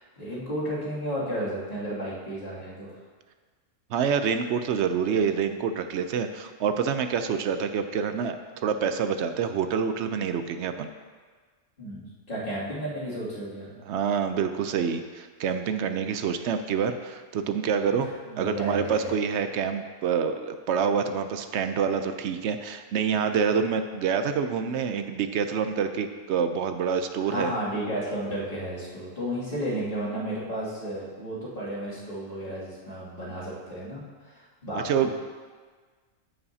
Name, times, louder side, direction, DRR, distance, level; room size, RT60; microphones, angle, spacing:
voice 1, 0.0-3.0 11.8-13.7 18.0-19.1 27.2-34.9, equal, 45° left, -9 dB, 2.7 m, -33 dB
voice 2, 3.9-8.4 8.6-10.9 13.9-18.1 18.4-27.5 34.7-35.1, right 6 dB, 65° right, 8 dB, 0.8 m, -27 dB
13.5 x 5.6 x 2.7 m, 1.5 s
omnidirectional pair, 1.4 m